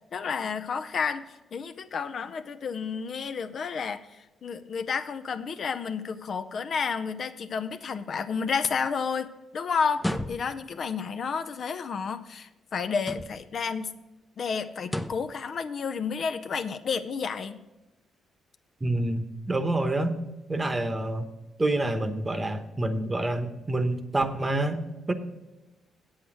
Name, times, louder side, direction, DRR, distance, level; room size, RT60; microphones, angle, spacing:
voice 1, 0.1-1.2 1.5-14.0 14.4-17.6, left 6 dB, 55° left, 10 dB, 0.5 m, -31 dB
sound 1, 9.9-10.8 13.0-13.6 14.8-15.4, left 1 dB, 10° left, 0.5 m, -33 dB
voice 2, 18.8-20.2 20.5-21.3 21.6-25.1, right 2 dB, 20° right, 9 dB, 1.0 m, -27 dB
8.0 x 7.9 x 6.2 m, 1.1 s
cardioid pair, 90°, 0 cm